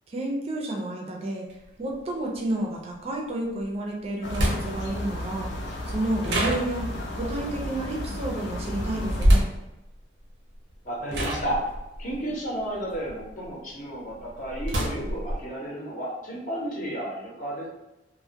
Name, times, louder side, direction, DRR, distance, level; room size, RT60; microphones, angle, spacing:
voice 1, 0.1-1.5 1.8-5.5 5.9-6.9 7.1-9.4, right 1 dB, 35° right, -1 dB, 0.4 m, -30 dB
sound 1, 1.5-1.6 3.6-3.7 4.3-5.0 6.2-7.1 9.2-9.7 10.6-10.8 11.1-13.5 13.9-15.4, equal, 80° right, 0.6 m, -25 dB
sound 2, 4.2-9.3, left 1 dB, 85° left, 0.4 m, -33 dB
voice 2, 10.8-11.6 12.0-17.7, right 1 dB, 45° left, -4 dB, 0.6 m, -32 dB
2.1 x 2.1 x 2.7 m, 0.97 s
head